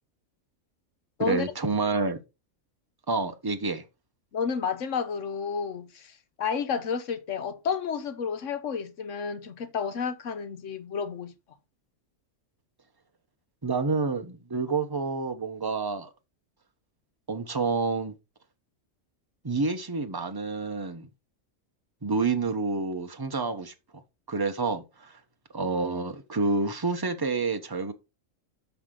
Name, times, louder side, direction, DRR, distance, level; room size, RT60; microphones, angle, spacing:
voice 1, 1.2-2.2 3.1-3.8 13.6-16.1 17.3-18.1 19.4-21.1 22.0-24.0 24.3-25.2 25.5-27.9, right 3 dB, 20° right, 0.8 m, -28 dB
voice 2, 4.3-11.3, left 6 dB, 65° left, 1.3 m, -31 dB
8.1 x 5.9 x 3.8 m
omnidirectional pair, 1.4 m